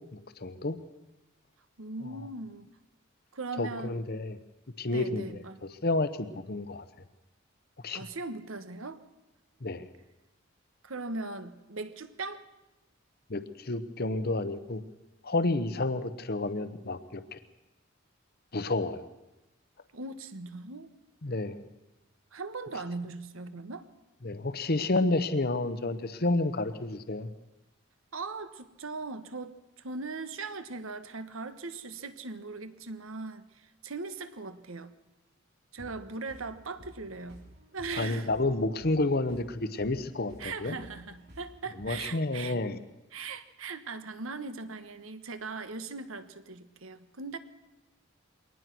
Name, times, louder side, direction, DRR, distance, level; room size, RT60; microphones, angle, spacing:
voice 1, 0.1-0.8 3.6-4.4 4.8-6.8 7.8-8.0 9.6-9.9 13.3-14.8 15.2-17.4 18.5-19.1 21.2-21.6 24.2-27.3 38.0-40.8 41.8-42.8, left 2 dB, 50° left, 12 dB, 1.0 m, -30 dB
voice 2, 1.8-2.7 3.3-4.0 4.9-5.6 7.9-9.0 10.8-12.5 19.9-20.9 22.3-23.9 28.1-34.9 35.7-37.4 37.7-38.3 40.4-42.6 43.1-47.4, right 3 dB, 80° right, 10 dB, 1.4 m, -39 dB
sound 1, 35.8-42.2, equal, 55° right, 5.4 m, -53 dB
23.0 x 19.0 x 6.2 m, 0.99 s
head